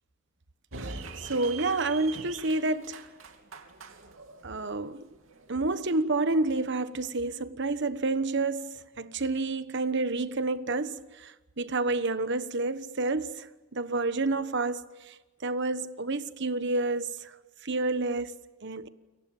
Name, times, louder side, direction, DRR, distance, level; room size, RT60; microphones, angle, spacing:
voice 1, 0.7-3.1 4.4-5.1 5.5-17.4 17.6-18.9, right 3 dB, 60° right, 1.2 m, -29 dB
sound 1, 0.7-5.8, right 4 dB, 85° right, 2.9 m, -43 dB
30.0 x 23.0 x 7.2 m
head